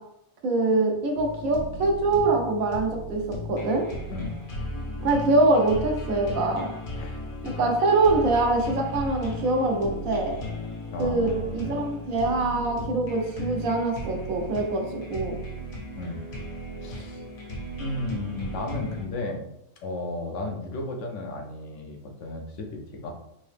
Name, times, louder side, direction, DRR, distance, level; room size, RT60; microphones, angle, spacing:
voice 1, 0.4-3.9 5.0-6.7 7.4-10.3 11.0-15.3, right 2 dB, 85° right, 2 dB, 1.2 m, -24 dB
sound 1, 1.2-19.1, left 1 dB, 85° left, 1.5 m, -36 dB
voice 2, 10.9-11.7 16.0-16.2 16.8-17.2 17.8-19.5 19.8-23.1, left 2 dB, 65° left, 2 dB, 1.0 m, -34 dB
4.1 x 2.7 x 3.3 m, 0.81 s
omnidirectional pair, 1.4 m